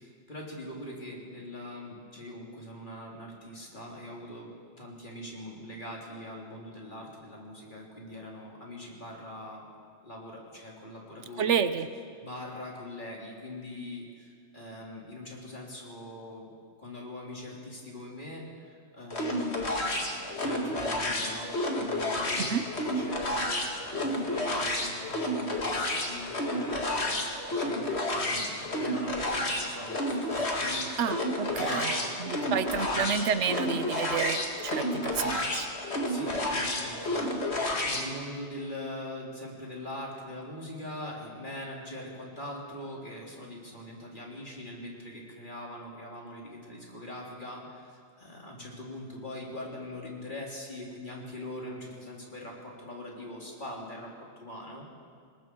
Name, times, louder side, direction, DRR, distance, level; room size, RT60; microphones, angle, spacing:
voice 1, 0.0-4.5 4.8-9.7 10.0-11.6 12.2-16.5 16.8-20.0 20.4-21.5 21.8-23.6 24.0-27.2 27.6-31.0 31.5-32.1 32.4-33.1 36.1-54.9, left 1 dB, 45° left, -3 dB, 3.8 m, -42 dB
voice 2, 11.4-11.9 22.4-22.6 31.0-31.9 32.2-35.7, right 7 dB, 85° right, 11 dB, 1.2 m, -30 dB
sound 1, 19.1-38.1, left 1 dB, 65° left, 2.5 m, -31 dB
27.5 x 20.0 x 4.7 m, 2.1 s
omnidirectional pair, 1.2 m